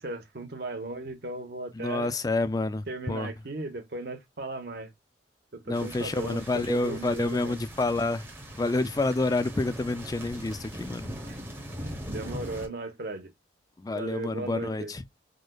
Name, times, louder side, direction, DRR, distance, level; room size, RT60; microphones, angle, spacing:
voice 1, 0.0-2.1 2.9-4.9 5.5-7.6 11.2-11.4 11.8-13.3 13.9-14.9, right 2 dB, 55° right, 0.9 m, -37 dB
voice 2, 1.7-3.3 5.7-8.2 8.5-11.1 13.8-15.0, left 2 dB, 20° left, 0.3 m, -28 dB
sound 1, 5.7-12.7, equal, 10° right, 0.7 m, -41 dB
4.9 x 2.1 x 2.2 m
head